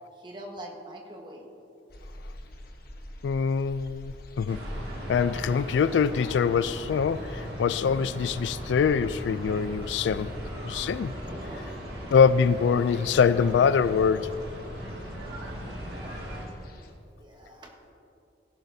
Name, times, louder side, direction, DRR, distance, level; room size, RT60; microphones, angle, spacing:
voice 1, 0.2-1.5 10.3-10.9 11.2-12.1 15.9-16.2 17.2-17.9, right 1 dB, 25° right, 1.3 m, -44 dB
sound 1, 1.9-16.9, left 1 dB, 55° left, 1.0 m, -48 dB
voice 2, 3.2-4.6 5.1-10.3 10.6-11.1 12.1-14.4, left 6 dB, 75° left, 0.3 m, -24 dB
sound 2, 4.5-16.5, equal, 60° right, 1.9 m, -38 dB
16.5 x 11.0 x 2.7 m
head